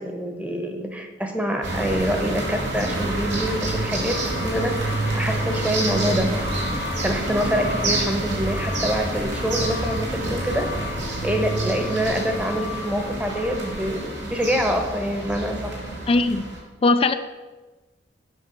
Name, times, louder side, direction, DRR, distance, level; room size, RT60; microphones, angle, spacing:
voice 1, 0.0-6.4 7.0-11.0 11.2-15.8, equal, 5° right, 4 dB, 1.0 m, -26 dB
sound 1, 1.6-16.6, right 1 dB, 75° right, 2.3 m, -27 dB
voice 2, 16.1-16.4 16.8-17.1, left 3 dB, 30° left, 9 dB, 0.4 m, -18 dB
7.6 x 5.6 x 6.7 m, 1.2 s
head